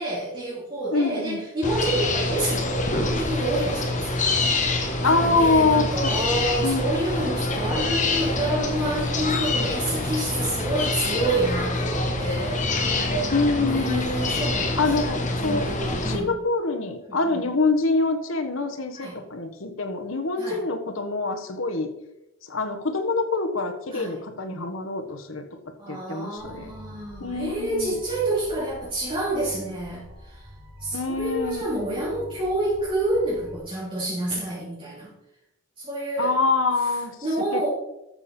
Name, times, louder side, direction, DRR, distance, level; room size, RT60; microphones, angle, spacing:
voice 1, 0.0-13.1 13.6-16.4 17.1-17.4 18.9-19.2 20.4-20.6 23.9-24.2 25.8-30.5 30.8-35.1 35.8-36.3 37.2-37.7, right 1 dB, 25° right, -9 dB, 3.7 m, -28 dB
voice 2, 0.9-1.4 5.0-6.1 6.6-6.9 13.3-14.1 14.8-15.7 16.0-21.9 22.4-25.4 25.9-26.7 27.2-27.9 30.9-31.6 36.2-37.1 37.5-37.7, left 3 dB, 70° left, 6 dB, 1.3 m, -25 dB
sound 1, 1.6-16.2, left 2 dB, 35° left, 1.6 m, -26 dB
sound 2, 26.4-33.6, equal, 65° right, 3.0 m, -45 dB
13.5 x 7.0 x 4.4 m, 0.90 s
head